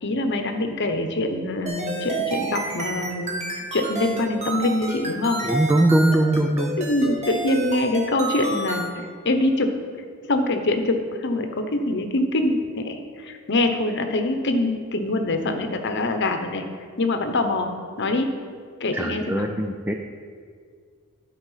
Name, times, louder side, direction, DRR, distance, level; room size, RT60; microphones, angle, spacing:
voice 1, 0.0-5.4 6.8-9.8 10.2-16.6 17.0-17.7 18.0-18.3 18.8-19.5, left 2 dB, 55° left, 6 dB, 0.9 m, -24 dB
sound 1, 1.7-8.9, right 2 dB, 30° right, 1.5 m, -29 dB
voice 2, 5.4-6.8 18.9-19.9, right 1 dB, 10° right, 4 dB, 0.4 m, -21 dB
12.5 x 4.7 x 5.7 m, 2.1 s
head